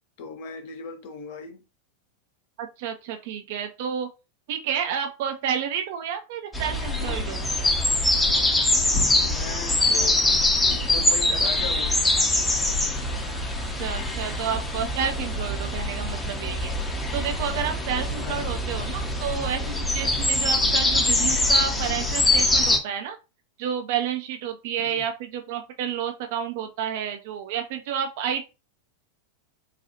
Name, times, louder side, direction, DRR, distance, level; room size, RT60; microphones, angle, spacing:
voice 1, 0.2-1.6 9.2-10.3 10.6-12.0 17.6-17.7 18.2-18.6 24.8-25.0, left 5 dB, 50° left, 0.8 m, -38 dB
voice 2, 2.6-4.1 4.5-7.5 13.8-16.7 17.1-23.2 23.6-28.4, right 8 dB, 50° right, 0.6 m, -30 dB
sound 1, 6.5-22.8, left 2 dB, 10° left, 0.7 m, -24 dB
3.9 x 2.3 x 2.8 m
figure-of-eight pair, 90°, 0 cm